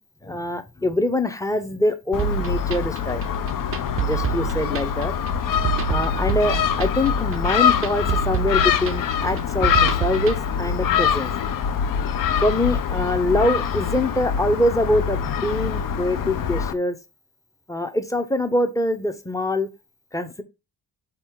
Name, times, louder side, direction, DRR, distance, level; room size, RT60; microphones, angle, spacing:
voice 1, 0.2-3.3 4.0-5.1 5.9-9.7 10.0-11.3 12.4-17.0 17.7-19.7 20.1-20.4, left 1 dB, 5° left, 0.7 m, -24 dB
Gull seagull, 2.1-16.7, left 7 dB, 50° left, 0.6 m, -24 dB
sound 1, 2.2-10.4, right 10 dB, 30° right, 0.5 m, -28 dB
4.0 x 2.9 x 3.6 m
hypercardioid pair, 45°, 45 cm